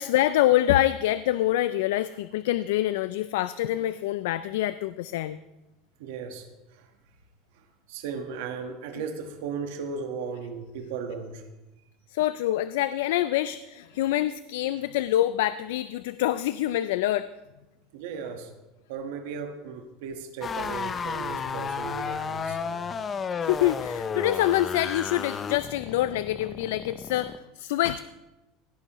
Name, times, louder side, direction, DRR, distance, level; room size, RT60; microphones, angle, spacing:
voice 1, 0.0-5.4 12.1-17.3 23.4-28.0, left 14 dB, 85° left, 14 dB, 0.3 m, -26 dB
voice 2, 6.0-6.5 6.7-6.9 7.9-11.4 17.9-18.5 18.9-22.8, right 5 dB, 80° right, 4 dB, 1.3 m, -36 dB
sound 1, 20.4-27.4, left 6 dB, 25° left, 0.4 m, -33 dB
16.5 x 9.9 x 3.0 m, 1.0 s
supercardioid pair, 140°, 0 cm